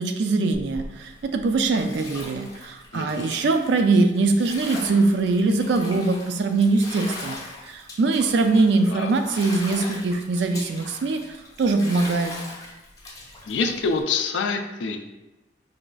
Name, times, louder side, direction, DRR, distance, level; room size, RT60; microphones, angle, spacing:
voice 1, 0.0-7.4 7.6-12.3, right 3 dB, 65° right, 6 dB, 0.4 m, -22 dB
Bathtub (filling or washing), 0.5-14.0, left 2 dB, 20° left, 0.6 m, -40 dB
voice 2, 2.9-3.3 8.9-9.1 13.5-15.0, left 4 dB, 80° left, 6 dB, 0.4 m, -26 dB
5.0 x 2.4 x 2.3 m, 1.0 s
head